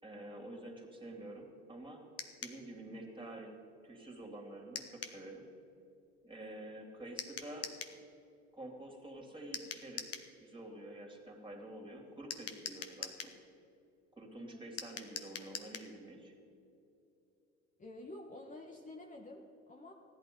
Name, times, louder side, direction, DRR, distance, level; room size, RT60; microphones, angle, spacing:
voice 1, 0.0-2.0 2.4-3.5 3.8-5.5 6.2-7.7 8.5-10.1 10.4-13.3 14.1-16.3, right 1 dB, 15° right, 1 dB, 2.9 m, -48 dB
Metal Clicker Dog Training Stereo Clip, 2.2-2.6 4.7-5.2 7.2-8.0 9.5-10.3 12.3-13.4 14.8-15.9, left 7 dB, 45° left, 1.3 m, -43 dB
voice 2, 17.8-19.9, left 2 dB, 25° left, 2 dB, 1.2 m, -50 dB
15.0 x 11.0 x 5.4 m, 2.8 s
hypercardioid pair, 80°, 33 cm